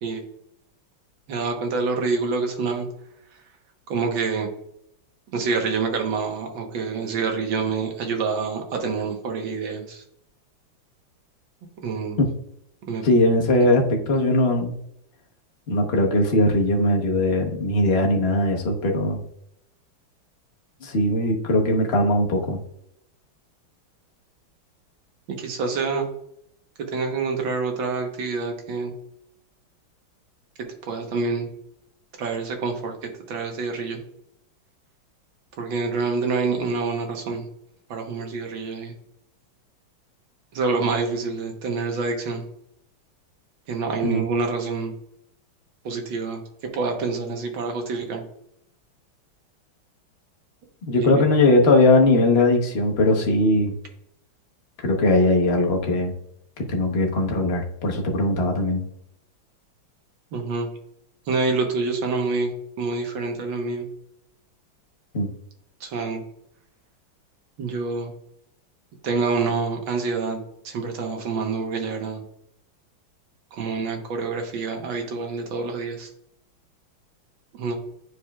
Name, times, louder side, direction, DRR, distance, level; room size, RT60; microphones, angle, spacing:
voice 1, 1.3-2.9 3.9-4.5 5.3-10.0 11.8-12.2 12.9-13.1 25.3-26.1 26.9-28.9 30.9-31.5 32.2-32.9 33.3-34.0 35.6-37.5 37.9-38.9 40.5-42.4 43.7-44.9 45.9-46.4 46.7-48.2 51.0-51.3 60.3-60.7 61.3-62.5 62.8-63.9 65.8-66.2 67.6-68.1 69.0-70.4 70.6-72.2 73.5-76.1 77.5-77.7, right 4 dB, 70° right, 3 dB, 1.9 m, -27 dB
voice 2, 13.0-14.7 15.7-19.2 20.8-22.6 44.0-44.3 50.8-53.7 54.8-56.1 56.7-58.8 65.1-65.3, left 2 dB, 40° left, 1 dB, 1.0 m, -20 dB
10.5 x 4.8 x 2.3 m, 0.75 s
omnidirectional pair, 2.2 m